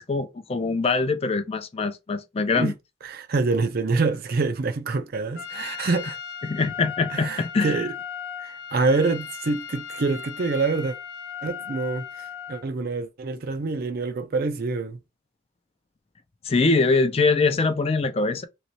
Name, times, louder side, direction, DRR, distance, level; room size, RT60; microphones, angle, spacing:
voice 1, 0.0-2.7 6.4-7.9 16.4-18.5, left 3 dB, 30° left, 0.4 m, -23 dB
voice 2, 3.0-6.2 7.1-7.9 8.4-11.0 11.4-15.0, right 3 dB, 50° right, 0.5 m, -26 dB
Trumpet, 5.4-12.7, left 8 dB, 65° left, 1.0 m, -37 dB
3.1 x 3.1 x 2.8 m
head